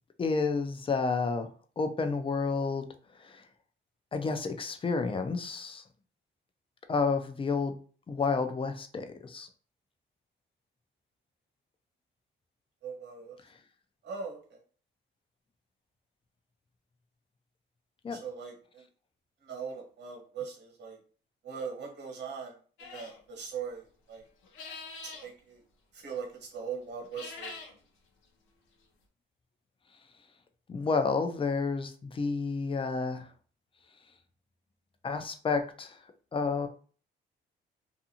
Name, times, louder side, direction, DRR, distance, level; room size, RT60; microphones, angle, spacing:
voice 1, 0.2-1.5 1.8-2.9 3.2-3.4 4.1-5.8 6.9-7.8 8.1-9.5 18.0-18.2 30.7-33.3 35.0-36.0 36.3-36.7, left 4 dB, 25° left, 8 dB, 0.4 m, -30 dB
voice 2, 12.8-13.3 14.0-14.6 18.1-18.8 19.4-21.0 21.4-24.2 25.0-25.6 25.9-27.6, right 6 dB, 60° right, 1 dB, 1.1 m, -40 dB
sound 1, 22.8-23.2 24.4-25.3 27.0-27.7, left 4 dB, 90° left, 0.7 m, -44 dB
2.5 x 2.5 x 2.8 m, 0.41 s
cardioid pair, 90°, 20 cm